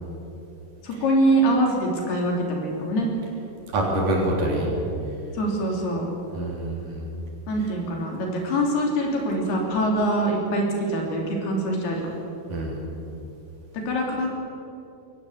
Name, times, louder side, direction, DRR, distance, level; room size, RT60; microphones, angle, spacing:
voice 1, 0.8-3.1 5.3-6.1 7.5-12.2 13.7-14.3, right 1 dB, 70° left, 0 dB, 5.3 m, -24 dB
voice 2, 3.7-4.7 6.3-7.0 12.5-12.8, right 1 dB, 55° right, -1 dB, 4.9 m, -25 dB
22.0 x 17.0 x 8.3 m, 2.9 s
omnidirectional pair, 4.8 m